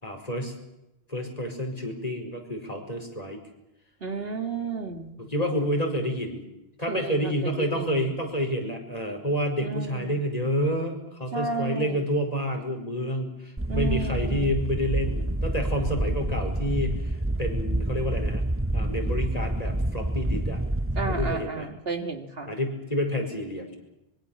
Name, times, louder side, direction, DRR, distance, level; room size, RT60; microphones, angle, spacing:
voice 1, 0.0-0.5 1.1-3.4 5.2-6.4 6.8-16.9 17.4-18.4 18.7-20.6 21.1-21.7 22.5-23.8, equal, 35° left, 3 dB, 5.2 m, -29 dB
voice 2, 4.0-5.1 6.9-8.1 9.6-10.2 11.3-12.1 13.7-14.6 21.0-22.5, right 4 dB, 60° right, 7 dB, 2.3 m, -33 dB
sound 1, 13.6-21.3, right 1 dB, 10° right, 1.1 m, -28 dB
25.0 x 23.0 x 7.3 m, 0.90 s
omnidirectional pair, 1.1 m